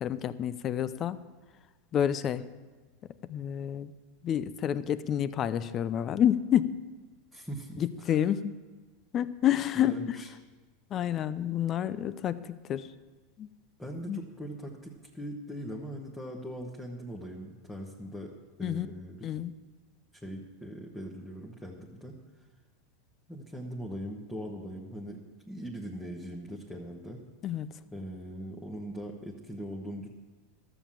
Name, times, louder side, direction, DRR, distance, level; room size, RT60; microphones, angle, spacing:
voice 1, 0.0-1.2 1.9-2.5 3.3-3.9 4.2-6.8 7.8-8.5 9.1-10.0 10.9-12.9 13.4-13.5 14.0-14.2 18.6-18.9 19.2-19.5 27.4-27.7, left 10 dB, 35° left, 15 dB, 0.5 m, -29 dB
voice 2, 7.3-8.2 9.7-10.3 13.8-18.3 18.6-19.2 20.1-22.2 23.3-27.2 27.9-30.1, equal, 5° left, -2 dB, 1.2 m, -40 dB
12.5 x 7.1 x 7.4 m, 1.3 s
supercardioid pair, 125°, 0 cm